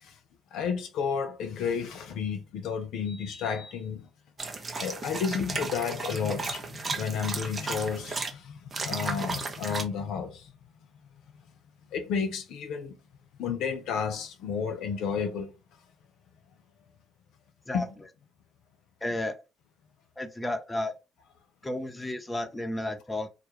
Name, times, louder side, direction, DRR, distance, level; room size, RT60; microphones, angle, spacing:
voice 1, 0.5-4.1 4.8-10.5 11.9-12.9 13.4-15.5 17.7-17.9, left 6 dB, 70° left, 0.4 m, -32 dB
sound 1, 4.4-8.3 8.7-9.8, right 3 dB, 35° right, 0.5 m, -34 dB
voice 2, 19.0-19.4 20.2-20.9 21.6-23.3, left 1 dB, 15° left, 0.5 m, -32 dB
2.2 x 2.0 x 2.8 m
hypercardioid pair, 55°, 0 cm